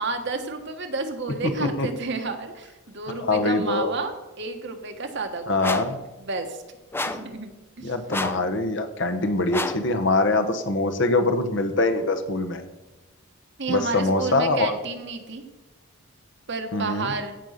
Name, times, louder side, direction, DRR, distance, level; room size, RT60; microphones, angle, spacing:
voice 1, 0.0-6.6 7.1-7.5 7.8-7.9 13.6-15.4 16.5-17.4, right 4 dB, 55° right, 6 dB, 1.3 m, -31 dB
voice 2, 3.2-3.9 5.5-6.0 7.8-12.6 13.7-14.7 16.7-17.1, left 2 dB, 55° left, 7 dB, 1.1 m, -23 dB
sound 1, 5.6-6.0 6.9-7.3 8.1-8.5 9.5-9.9, left 2 dB, 10° left, 0.6 m, -29 dB
15.5 x 5.5 x 6.5 m, 1.1 s
head